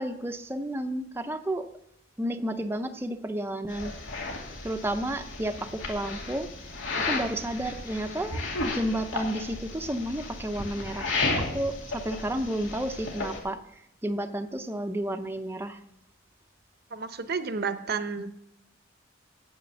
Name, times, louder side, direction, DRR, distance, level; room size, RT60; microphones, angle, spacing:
voice 1, 0.0-1.7 2.2-4.0 4.6-6.5 7.0-15.8, right 1 dB, 10° right, 6 dB, 0.6 m, -32 dB
sound 1, 3.7-13.4, left 3 dB, 80° left, 2.5 m, -34 dB
voice 2, 16.9-18.3, right 5 dB, 55° right, 11 dB, 0.7 m, -31 dB
9.4 x 8.0 x 6.8 m, 0.81 s
head